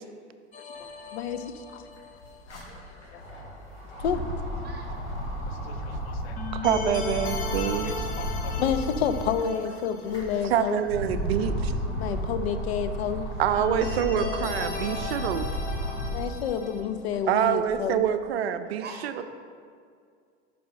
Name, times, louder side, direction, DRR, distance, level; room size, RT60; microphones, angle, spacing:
sound 1, 0.5-2.4 6.4-10.7 11.0-11.1 13.5-16.8, left 4 dB, 25° left, 0.6 m, -36 dB
sound 2, 1.2-1.3 1.5-9.3 9.8-16.3 16.8-18.0, equal, 90° left, 1.5 m, -33 dB
voice 1, 2.7-3.2 4.6-4.9 8.5-8.6 10.4-10.5 12.0-12.2 15.2-15.3 17.0-17.2 18.0-18.1 18.8-19.2, right 4 dB, 30° right, 1 dB, 0.8 m, -47 dB
voice 2, 5.7-6.4 7.7-7.8 8.1-10.8 12.0-13.3 16.0-18.0, left 8 dB, 65° left, 10 dB, 0.5 m, -30 dB
voice 3, 6.5-7.9 10.4-11.7 13.4-15.5 17.2-19.2, right 9 dB, 65° right, 10 dB, 0.5 m, -26 dB
5.4 x 5.0 x 3.9 m, 2.2 s
figure-of-eight pair, 85°, 34 cm